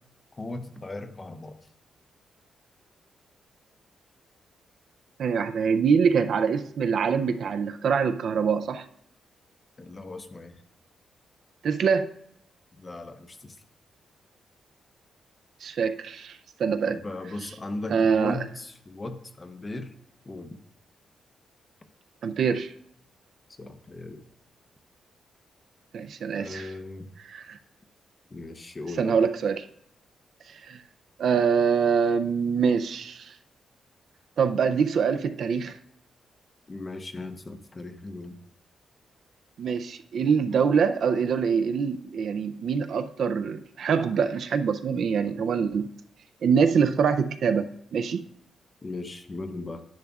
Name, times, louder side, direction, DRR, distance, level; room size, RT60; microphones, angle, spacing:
voice 1, 0.3-1.6 9.8-10.6 12.8-13.6 16.9-20.0 20.2-20.6 23.6-24.2 26.4-27.1 28.3-29.2 36.7-38.4 48.8-49.8, left 2 dB, 20° left, 9 dB, 0.6 m, -37 dB
voice 2, 5.2-8.9 11.6-12.1 15.6-17.0 17.9-18.4 22.2-22.7 25.9-26.7 27.2-27.6 29.0-29.7 30.5-30.8 31.2-33.3 34.4-35.8 39.6-45.9 46.4-48.2, right 6 dB, 55° right, 9 dB, 0.4 m, -24 dB
10.5 x 10.5 x 2.4 m, 0.74 s
wide cardioid pair, 175°, 0 cm